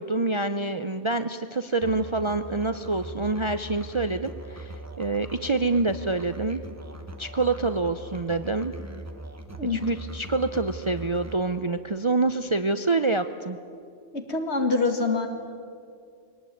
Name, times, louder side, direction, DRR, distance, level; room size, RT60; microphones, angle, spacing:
voice 1, 0.0-6.6 7.2-8.7 9.7-13.6, right 3 dB, 35° right, 9 dB, 0.5 m, -26 dB
Musical instrument, 1.8-11.4, right 2 dB, 15° right, 1.1 m, -41 dB
voice 2, 14.1-15.3, left 3 dB, 60° left, 5 dB, 2.3 m, -25 dB
22.5 x 18.0 x 9.2 m, 2.3 s
omnidirectional pair, 1.2 m